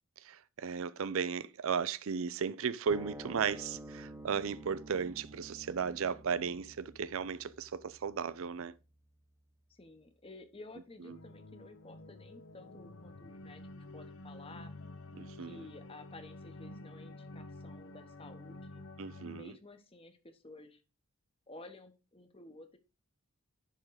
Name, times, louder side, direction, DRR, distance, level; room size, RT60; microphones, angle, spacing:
voice 1, 0.2-8.7 15.2-15.6 19.0-19.5, right 6 dB, 65° right, 0.5 m, -35 dB
sound 1, 2.9-9.5, right 1 dB, 15° right, 0.8 m, -50 dB
voice 2, 9.7-14.7 15.4-18.8 19.3-20.8 21.5-22.8, left 2 dB, 25° left, 0.9 m, -53 dB
sound 2, 11.1-19.4, left 2 dB, 60° left, 0.6 m, -49 dB
10.5 x 3.7 x 4.7 m
head